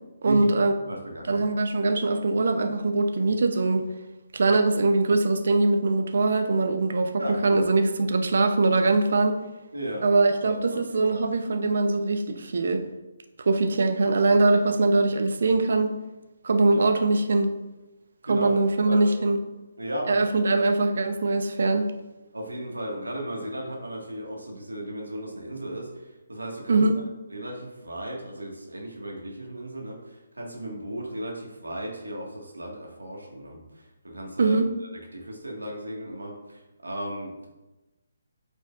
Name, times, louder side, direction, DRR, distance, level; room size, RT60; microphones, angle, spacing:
voice 1, 0.2-0.7 1.3-3.8 4.3-7.1 7.4-9.4 10.0-12.8 13.4-15.9 16.4-17.5 18.3-19.4 20.1-21.9 26.7-26.9 34.4-34.7, right 3 dB, 65° right, 7 dB, 0.7 m, -22 dB
voice 2, 0.8-1.5 7.2-7.6 9.7-10.0 10.4-11.2 16.6-17.0 18.3-18.5 18.9-19.1 19.8-20.3 22.3-26.8 27.3-34.6 35.1-37.5, right 1 dB, 90° right, -1 dB, 1.8 m, -35 dB
8.8 x 5.2 x 2.5 m, 1.1 s
figure-of-eight pair, 145°, 0 cm